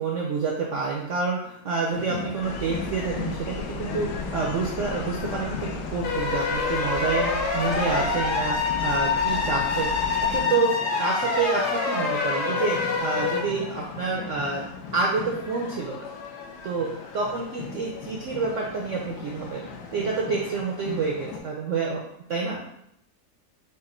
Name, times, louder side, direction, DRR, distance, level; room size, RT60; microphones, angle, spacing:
voice 1, 0.0-10.7 11.0-14.6 14.9-16.0 16.6-16.9 17.1-19.7 19.9-22.0 22.3-22.6, right 4 dB, 75° right, -2 dB, 0.7 m, -28 dB
sound 1, 1.9-21.4, left 5 dB, 90° left, 1.4 m, -38 dB
sound 2, 2.4-10.4, left 2 dB, 70° left, 0.9 m, -37 dB
sound 3, 6.0-13.4, left 4 dB, 55° left, 1.1 m, -26 dB
5.1 x 2.5 x 4.2 m, 0.77 s
omnidirectional pair, 2.0 m